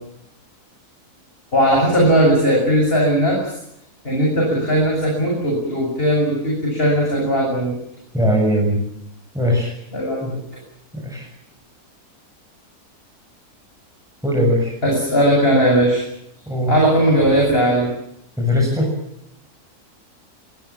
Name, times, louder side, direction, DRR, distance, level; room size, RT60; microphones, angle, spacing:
voice 1, 1.5-3.5 4.0-7.7 9.9-10.3 14.8-16.0 16.7-17.9, equal, 35° left, -1 dB, 8.0 m, -17 dB
voice 2, 8.1-8.8 9.3-9.7 10.2-10.4 10.9-11.3 14.2-14.7 16.5-16.8 18.4-18.9, equal, ahead, -2 dB, 7.6 m, -19 dB
24.5 x 23.5 x 7.4 m, 0.77 s
omnidirectional pair, 1.7 m